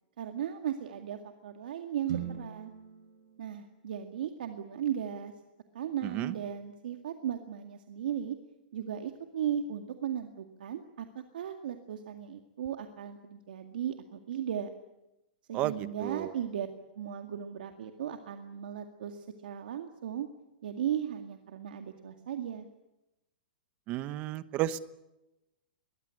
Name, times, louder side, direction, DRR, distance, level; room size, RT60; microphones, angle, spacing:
voice 1, 0.2-2.7 3.4-5.3 5.7-8.4 8.7-14.7 15.5-16.7 17.0-20.3 20.6-22.7, right 9 dB, 70° right, 5 dB, 2.1 m, -36 dB
sound 1, 2.1-6.1, right 9 dB, 50° right, 5.3 m, -44 dB
voice 2, 6.0-6.3 15.5-16.3 23.9-24.8, right 14 dB, 25° right, 14 dB, 1.0 m, -33 dB
21.5 x 20.0 x 9.9 m, 0.96 s
hypercardioid pair, 165°, 5 cm